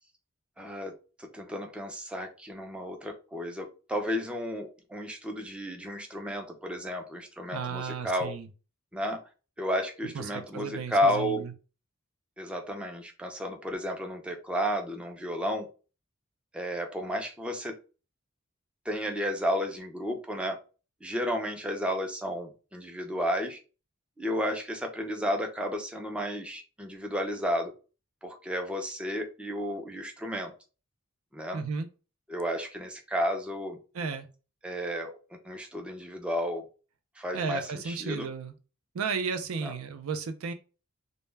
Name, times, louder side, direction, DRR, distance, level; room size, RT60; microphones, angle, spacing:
voice 1, 0.6-0.9 1.2-8.3 8.9-9.2 9.6-11.4 12.4-15.7 16.5-17.7 18.9-20.6 21.0-23.6 24.2-27.7 28.2-30.5 31.3-31.6 32.3-33.8 34.6-35.1 35.4-36.6 37.2-38.3 39.6-39.7, equal, 5° right, 0.3 m, -32 dB
voice 2, 7.5-8.5 10.1-11.5 31.5-31.9 33.9-34.3 37.3-38.5 38.9-40.5, right 5 dB, 85° right, 0.4 m, -34 dB
2.1 x 2.1 x 3.2 m
head